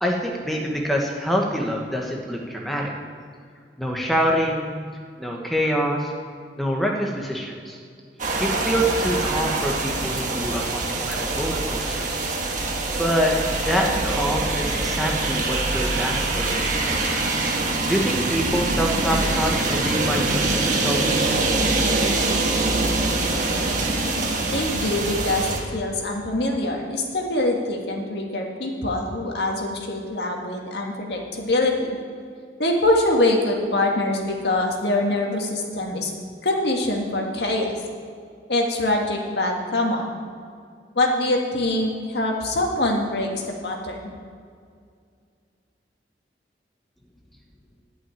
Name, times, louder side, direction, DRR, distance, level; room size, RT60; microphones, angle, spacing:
voice 1, 0.0-2.9 3.8-4.7 5.2-6.1 6.6-7.8 8.4-12.2 12.6-17.0 17.9-21.2, equal, ahead, -1 dB, 1.1 m, -26 dB
sound 1, 8.2-25.6, right 2 dB, 45° right, 1.5 m, -24 dB
voice 2, 24.5-32.0 32.6-36.1 36.4-37.7 38.5-40.2 41.0-43.3 43.6-44.1, left 2 dB, 65° left, 0 dB, 1.8 m, -24 dB
12.0 x 5.7 x 9.0 m, 2.2 s
head